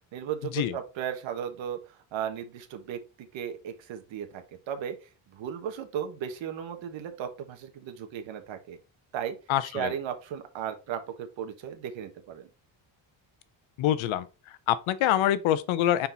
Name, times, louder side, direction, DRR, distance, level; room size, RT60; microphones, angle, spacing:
voice 1, 0.1-3.0 3.3-8.8 9.1-9.4 9.6-12.5, right 9 dB, 65° right, 1.4 m, -36 dB
voice 2, 9.5-9.9 13.8-14.2 14.7-16.1, left 12 dB, 75° left, 0.8 m, -25 dB
5.9 x 4.4 x 3.9 m
cardioid pair, 135°, 48 cm